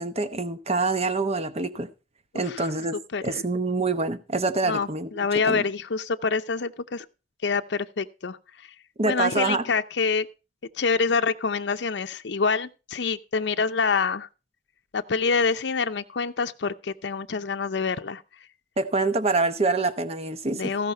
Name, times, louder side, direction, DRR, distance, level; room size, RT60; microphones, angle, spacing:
voice 1, 0.0-1.9 2.3-3.0 3.2-5.6 9.0-9.6 18.8-20.6, right 3 dB, 35° right, 1.0 m, -26 dB
voice 2, 3.1-3.4 4.6-7.0 7.4-8.7 9.1-10.3 10.8-14.3 14.9-18.2 20.5-20.9, left 5 dB, 75° left, 0.6 m, -26 dB
15.0 x 5.6 x 5.5 m
head